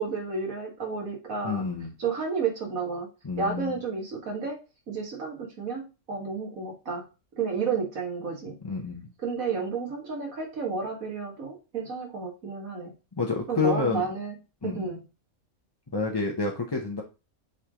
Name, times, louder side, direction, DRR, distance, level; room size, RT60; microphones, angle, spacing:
voice 1, 0.0-1.6 2.0-3.1 3.4-4.6 4.9-5.8 6.1-7.1 7.4-8.6 9.2-12.9 13.5-14.3 14.6-15.0, right 5 dB, 75° right, 1 dB, 2.1 m, -31 dB
voice 2, 1.4-1.9 3.2-3.7 8.6-9.1 13.2-14.0 14.6-14.9 15.9-17.0, left 4 dB, 25° left, 0 dB, 0.6 m, -29 dB
8.0 x 3.3 x 3.6 m, 0.29 s
omnidirectional pair, 1.4 m